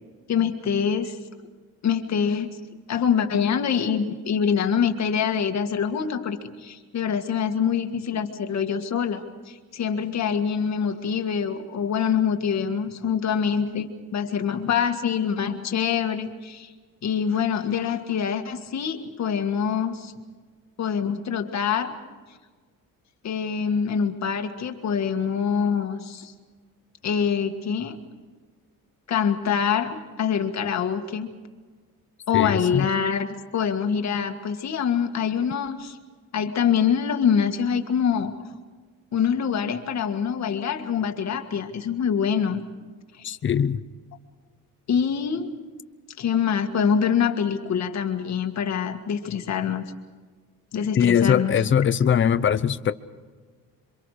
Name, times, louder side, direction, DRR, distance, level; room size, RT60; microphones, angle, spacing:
voice 1, 0.3-1.2 1.8-2.5 2.9-16.7 17.0-20.1 20.8-21.9 23.2-26.3 27.0-28.0 29.1-31.3 32.3-36.0 36.3-38.3 39.1-42.6 43.1-43.3 44.9-45.5 46.2-49.8 50.7-51.6, left 7 dB, 50° left, 6 dB, 1.9 m, -25 dB
voice 2, 32.3-32.9 43.2-43.8 51.0-52.9, left 8 dB, 35° left, 13 dB, 0.7 m, -21 dB
27.5 x 25.0 x 5.0 m, 1.5 s
cardioid pair, 175°, 34 cm